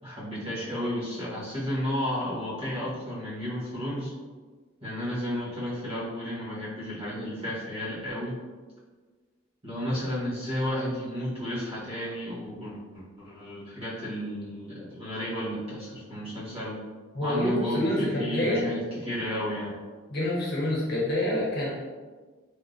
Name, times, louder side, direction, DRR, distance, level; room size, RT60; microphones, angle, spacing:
voice 1, 0.0-4.1 4.8-8.3 9.6-16.8 17.2-19.7, equal, 30° right, -9 dB, 1.2 m, -32 dB
voice 2, 17.1-18.7 20.1-21.7, left 1 dB, 55° left, -6 dB, 1.0 m, -27 dB
3.4 x 2.8 x 2.5 m, 1.4 s
head